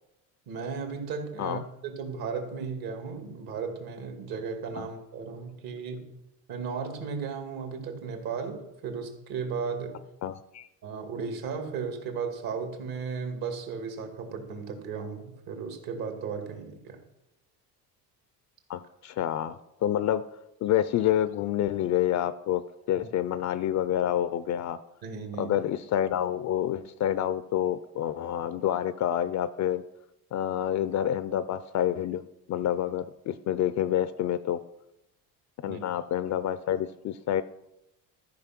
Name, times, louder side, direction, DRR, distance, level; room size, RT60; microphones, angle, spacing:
voice 1, 0.5-6.2 6.5-10.0 10.8-17.0 23.0-23.1 25.0-25.6 35.7-35.8, right 5 dB, 60° right, 4 dB, 2.3 m, -35 dB
voice 2, 10.2-10.7 18.7-20.2 20.6-22.6 22.9-24.8 25.4-29.8 30.3-32.2 32.5-34.6 35.6-37.4, left 11 dB, 45° left, 14 dB, 0.5 m, -28 dB
13.5 x 5.1 x 5.9 m, 0.90 s
cardioid pair, 110°, 40 cm